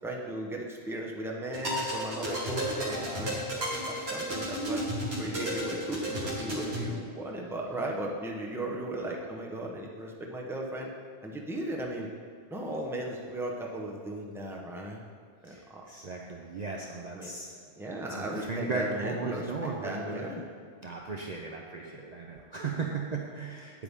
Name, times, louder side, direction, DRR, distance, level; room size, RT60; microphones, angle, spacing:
voice 1, 0.0-3.4 3.9-10.9 11.2-12.1 12.5-15.0 15.4-15.8 17.1-17.3 17.8-20.4, right 1 dB, 5° right, -1 dB, 0.8 m, -36 dB
sound 1, 1.5-6.9, equal, 70° right, 1.9 m, -33 dB
voice 2, 15.5-17.6 18.1-20.3 20.8-23.8, right 4 dB, 45° right, 0 dB, 0.7 m, -36 dB
8.6 x 8.3 x 3.6 m, 2.2 s
omnidirectional pair, 1.1 m